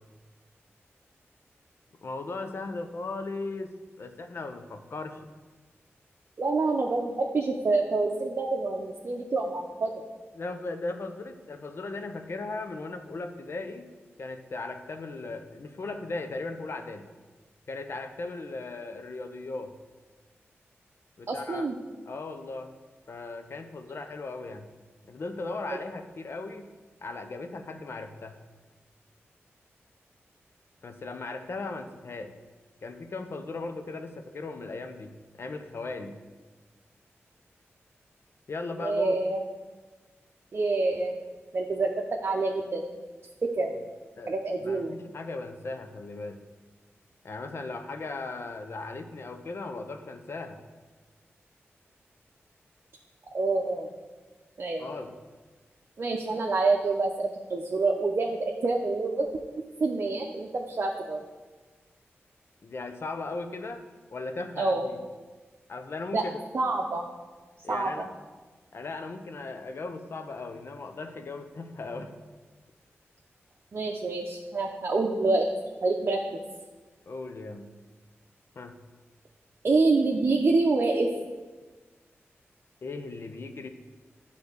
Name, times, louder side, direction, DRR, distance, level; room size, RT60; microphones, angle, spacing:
voice 1, 2.0-5.2 10.3-13.9 14.2-17.1 17.7-19.7 21.2-21.7 22.1-22.7 23.1-24.7 25.1-26.7 27.0-28.4 30.8-32.3 32.8-36.2 38.5-39.2 43.7-43.8 44.2-46.4 47.2-50.6 54.8-55.1 62.6-65.0 65.7-66.4 67.6-68.1 68.7-72.1 77.1-77.7 78.6-78.8 82.8-83.7, left 3 dB, 60° left, 7 dB, 0.7 m, -37 dB
voice 2, 6.4-9.9 21.3-21.7 38.8-39.4 40.5-41.1 41.5-41.9 42.2-42.9 43.6-43.7 44.3-45.0 53.3-53.9 54.6-54.9 56.0-59.3 59.8-61.2 64.6-64.8 66.1-66.2 66.5-67.1 67.7-68.1 73.7-75.5 75.8-76.2 79.6-81.1, right 3 dB, 55° right, 0 dB, 0.7 m, -27 dB
9.3 x 3.3 x 6.6 m, 1.3 s
cardioid pair, 65°, 5 cm